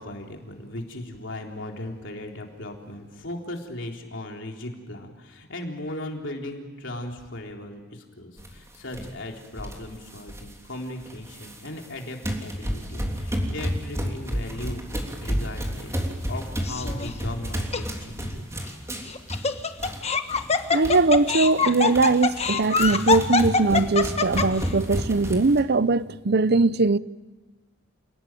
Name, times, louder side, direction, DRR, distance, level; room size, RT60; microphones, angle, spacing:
voice 1, 0.0-15.9 16.3-18.3, left 1 dB, 70° left, 3.8 m, -37 dB
sound 1, 8.4-8.6 8.9-9.1 9.6-10.5 11.0-11.9 12.2-20.0 20.3-20.5 20.8-21.1 21.4-25.6, equal, 15° right, 3.3 m, -31 dB
Laughter, 16.6-17.1 17.7-17.8 19.1-24.7, left 5 dB, 35° left, 1.3 m, -24 dB
voice 2, 20.7-27.0, right 3 dB, 55° right, 0.7 m, -21 dB
29.0 x 18.0 x 9.2 m
head